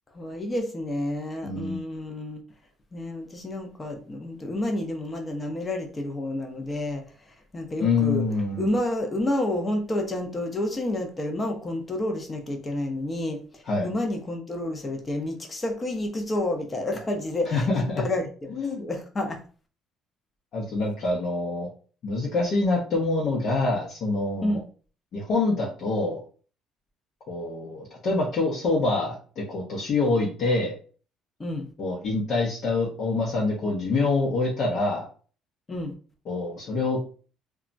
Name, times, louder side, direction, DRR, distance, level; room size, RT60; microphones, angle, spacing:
voice 1, 0.1-2.4 2.9-7.0 7.5-8.2 8.6-19.4 24.4-24.6 31.4-31.7 35.7-35.9, left 1 dB, 25° left, 0.7 m, -30 dB
voice 2, 1.4-1.8 7.8-8.7 13.7-13.9 17.4-18.0 18.5-18.8 20.5-21.7 22.0-24.6 25.1-26.2 27.3-30.7 31.8-35.1 36.3-37.0, left 3 dB, 55° left, 0.8 m, -26 dB
2.3 x 2.1 x 3.9 m
cardioid pair, 105°, 0 cm